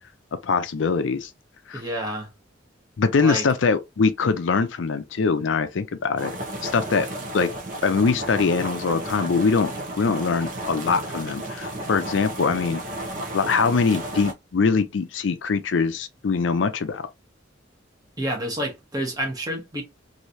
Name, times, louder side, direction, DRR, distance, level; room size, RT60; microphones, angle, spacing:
voice 1, 0.4-1.3 1.7-1.8 3.0-6.3 6.6-7.1 7.3-7.5 7.8-9.7 10.0-12.8 13.3-17.1, left 4 dB, 70° left, 0.5 m, -23 dB
voice 2, 1.7-2.3 3.2-3.5 18.2-19.8, right 1 dB, 20° right, 1.1 m, -29 dB
sound 1, 6.2-14.3, right 1 dB, 45° right, 0.9 m, -33 dB
3.1 x 2.7 x 2.7 m
head